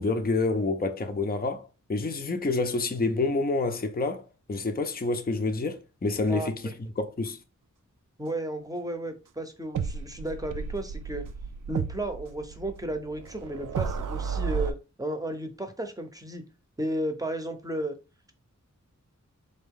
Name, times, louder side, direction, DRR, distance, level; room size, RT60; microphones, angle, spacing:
voice 1, 0.0-4.2 4.5-6.5 7.0-7.4, left 3 dB, 30° left, 0.5 m, -28 dB
voice 2, 8.2-11.2 11.7-16.4 16.8-17.9, right 1 dB, 10° right, 0.7 m, -33 dB
sound 1, 9.7-14.7, right 6 dB, 75° right, 0.5 m, -33 dB
4.0 x 2.6 x 3.6 m
wide cardioid pair, 70°, 31 cm